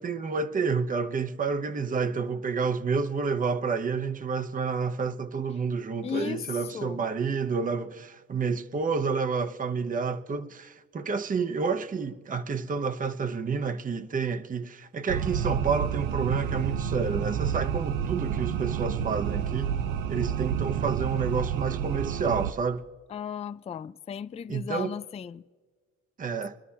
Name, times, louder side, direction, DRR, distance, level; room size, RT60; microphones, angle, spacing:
voice 1, 0.0-19.8 20.1-22.9 24.5-24.9 26.2-26.6, right 5 dB, 30° right, 0.7 m, -29 dB
voice 2, 6.0-6.5 6.7-7.0 23.1-25.4, left 8 dB, 20° left, 0.3 m, -35 dB
sound 1, 15.1-22.5, right 8 dB, 90° right, 0.7 m, -29 dB
24.0 x 12.5 x 2.8 m
cardioid pair, 90°, 30 cm